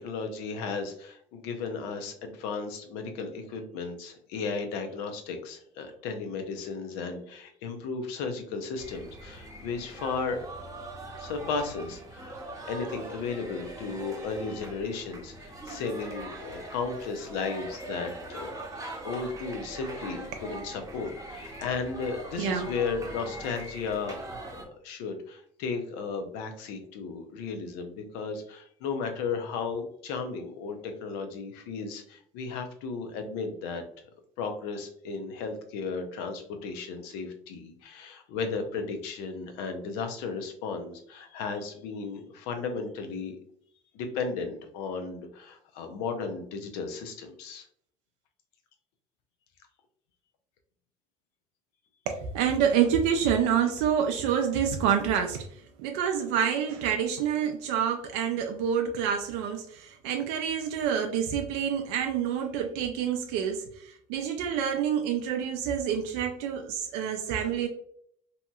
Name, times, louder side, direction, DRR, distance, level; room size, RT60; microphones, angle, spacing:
voice 1, 0.0-10.4 11.2-24.2 24.8-33.8 34.4-43.3 43.9-47.6, left 4 dB, 80° left, 6 dB, 0.6 m, -35 dB
sound 1, 8.8-24.6, right 1 dB, 20° right, 0.7 m, -42 dB
voice 2, 22.4-22.7 52.1-67.7, right 8 dB, 80° right, 4 dB, 0.4 m, -27 dB
2.8 x 2.7 x 2.2 m, 0.65 s
supercardioid pair, 75°, 17 cm